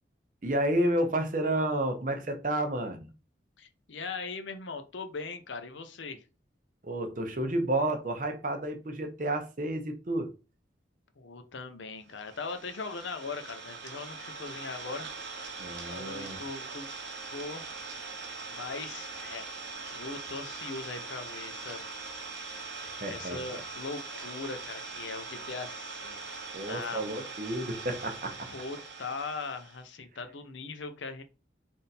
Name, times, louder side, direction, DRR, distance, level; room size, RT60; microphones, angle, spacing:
voice 1, 0.4-3.1 6.8-10.3 15.6-16.4 22.9-23.6 26.5-28.5, right 1 dB, 45° right, 0.7 m, -31 dB
voice 2, 3.6-6.2 11.2-15.1 15.4-15.5 15.9-16.9 17.3-17.7 18.5-19.5 19.9-21.9 22.3-27.0 28.5-31.2, left 4 dB, 85° left, 0.7 m, -40 dB
Idling, 12.1-29.8, right 4 dB, 85° right, 0.9 m, -42 dB
3.5 x 2.6 x 4.1 m
head